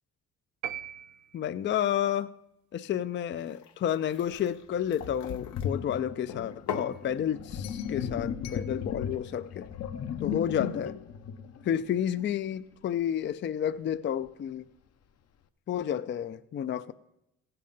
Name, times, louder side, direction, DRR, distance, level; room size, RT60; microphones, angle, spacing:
sound 1, 0.6-1.9, right 10 dB, 70° right, 0.6 m, -39 dB
voice 1, 1.3-2.3 2.7-9.7 10.2-11.0 11.6-14.6 15.7-16.9, left 9 dB, 40° left, 13 dB, 0.4 m, -31 dB
sound 2, 3.4-5.7 6.3-7.0 7.6-8.0 8.4-8.7, left 7 dB, 85° left, 1.0 m, -41 dB
Sink (filling or washing), 4.3-4.4 5.0-12.3, left 8 dB, 60° left, 0.8 m, -36 dB
15.5 x 7.8 x 5.2 m, 0.86 s
cardioid pair, 90°, 30 cm